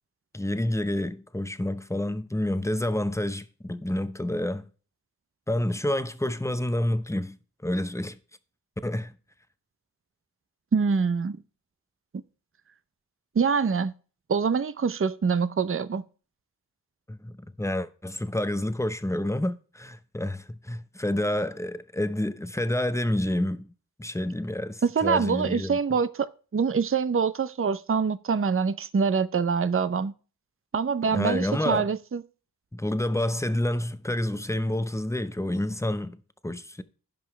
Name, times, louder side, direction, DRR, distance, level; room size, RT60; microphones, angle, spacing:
voice 1, 0.3-4.6 5.5-7.4 7.6-8.2 8.8-9.1 17.1-23.7 24.0-25.8 31.1-31.9 32.7-36.2 36.4-36.8, left 1 dB, 10° left, 0.8 m, -28 dB
voice 2, 10.7-11.4 13.3-13.9 14.3-16.0 24.8-30.1 30.7-32.2, right 5 dB, 35° right, 0.6 m, -25 dB
15.5 x 5.5 x 3.2 m
wide cardioid pair, 55°, 37 cm